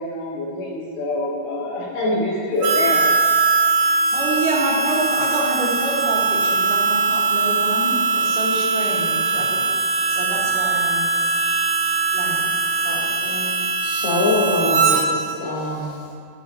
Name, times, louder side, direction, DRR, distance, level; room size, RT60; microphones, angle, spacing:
voice 1, 0.0-3.1, left 2 dB, 85° left, -6 dB, 3.9 m, -25 dB
Harmonica, 2.6-15.1, right 4 dB, 80° right, 2.7 m, -21 dB
voice 2, 4.1-9.6 10.1-11.1 12.1-12.4 12.8-13.6, right 2 dB, 65° right, -7 dB, 2.3 m, -27 dB
voice 3, 13.8-15.9, left 1 dB, 70° left, -8 dB, 2.3 m, -23 dB
13.5 x 5.6 x 2.7 m, 2.3 s
omnidirectional pair, 5.5 m